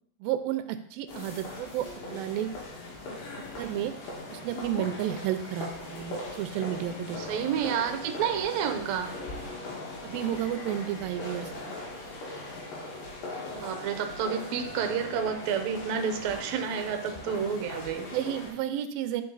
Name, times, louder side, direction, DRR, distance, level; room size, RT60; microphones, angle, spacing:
voice 1, 0.2-2.5 3.6-3.9 4.3-7.2 10.0-11.8 18.1-19.2, right 11 dB, 90° right, 10 dB, 2.4 m, -32 dB
sound 1, 1.1-18.5, left 2 dB, 75° left, 3.3 m, -40 dB
voice 2, 7.2-9.1 13.5-18.1, right 7 dB, 70° right, 6 dB, 1.7 m, -30 dB
10.5 x 4.5 x 3.9 m, 0.69 s
omnidirectional pair, 4.0 m